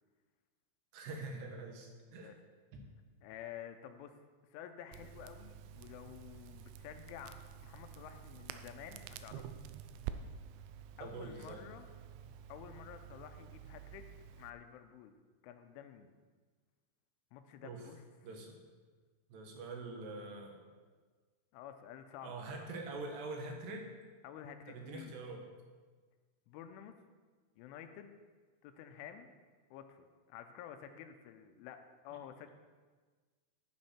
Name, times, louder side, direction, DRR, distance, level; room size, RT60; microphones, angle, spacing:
voice 1, 0.9-2.3 2.7-2.8 11.0-11.6 17.6-17.8 18.2-18.5 19.3-20.6 22.2-23.9 24.7-25.5 32.1-32.2, right 3 dB, 65° right, 2 dB, 3.1 m, -44 dB
voice 2, 3.2-4.2 4.5-9.5 11.0-11.9 12.5-14.1 14.4-15.1 15.4-16.1 17.3-18.0 21.5-22.7 24.2-25.1 26.5-27.0 27.6-28.2 28.6-29.3 29.7-32.5, left 9 dB, 80° left, 7 dB, 3.1 m, -51 dB
Crackle, 4.9-14.5, right 9 dB, 85° right, 2.5 m, -49 dB
11.5 x 9.6 x 4.4 m, 1.4 s
omnidirectional pair, 5.7 m